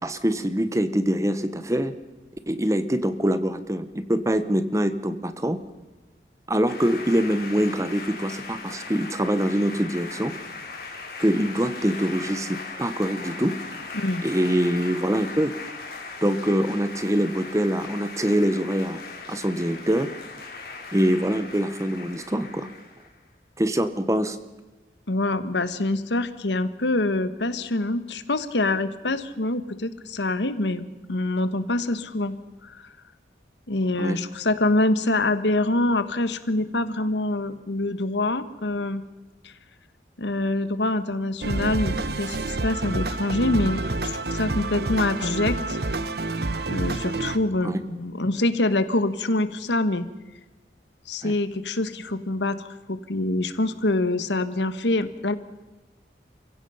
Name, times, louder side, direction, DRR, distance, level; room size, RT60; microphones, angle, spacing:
voice 1, 0.0-1.9 2.5-5.6 6.5-10.3 11.2-13.5 14.2-15.5 16.2-19.0 19.3-20.1 20.9-22.7 23.6-24.4 34.0-34.2 47.6-47.8 51.2-51.3, equal, 15° right, 12 dB, 1.0 m, -24 dB
sound 1, 6.7-23.1, left 3 dB, 60° left, 4.3 m, -38 dB
voice 2, 25.1-32.3 32.6-32.9 33.7-39.0 39.4-39.5 40.2-45.8 46.7-50.1 51.1-55.3, left 2 dB, 90° left, 12 dB, 1.3 m, -25 dB
sound 2, 41.4-47.4, right 2 dB, 65° right, 1.1 m, -28 dB
29.0 x 16.0 x 5.7 m, 1.1 s
head